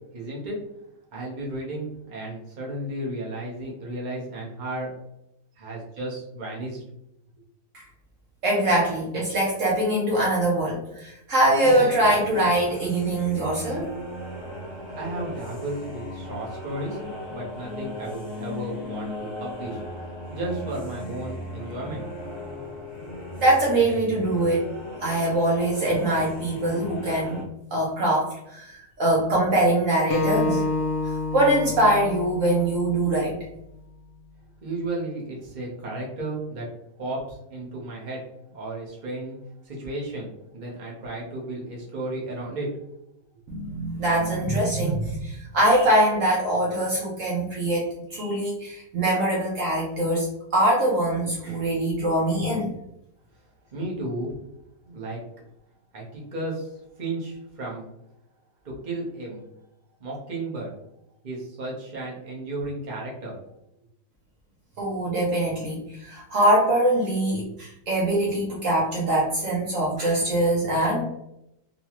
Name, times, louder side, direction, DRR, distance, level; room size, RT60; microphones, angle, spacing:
voice 1, 0.1-0.6 1.1-4.9 5.6-6.8 15.0-17.0 17.3-19.8 20.3-22.1 34.6-36.7 37.0-38.2 38.5-39.4 39.6-42.7 53.7-54.3 54.8-55.2 55.9-57.9 58.6-59.5 60.0-60.7 61.2-63.3, right 2 dB, 35° right, -3 dB, 1.0 m, -33 dB
voice 2, 8.4-13.9 23.4-24.6 25.0-27.4 27.7-30.7 31.0-33.4 43.5-52.7 64.8-71.0, right 1 dB, 65° right, -4 dB, 1.0 m, -23 dB
sound 1, 11.9-27.4, left 1 dB, 50° left, 1.3 m, -37 dB
Acoustic guitar, 30.1-33.4, left 3 dB, 70° left, 0.9 m, -29 dB
4.0 x 2.3 x 2.9 m, 0.82 s
omnidirectional pair, 1.6 m